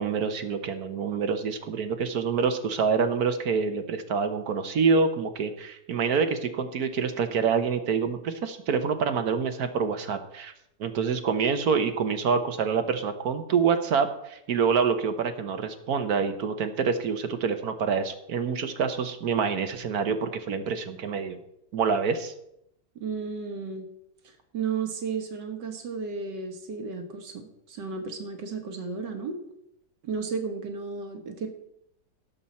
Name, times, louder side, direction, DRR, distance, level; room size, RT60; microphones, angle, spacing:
voice 1, 0.0-10.5 10.8-21.4 21.7-22.3, right 5 dB, 65° right, 8 dB, 1.4 m, -26 dB
voice 2, 23.0-23.9 24.2-29.4 30.0-31.5, right 5 dB, 90° right, 4 dB, 2.0 m, -33 dB
17.5 x 7.3 x 4.2 m, 0.79 s
omnidirectional pair, 1.8 m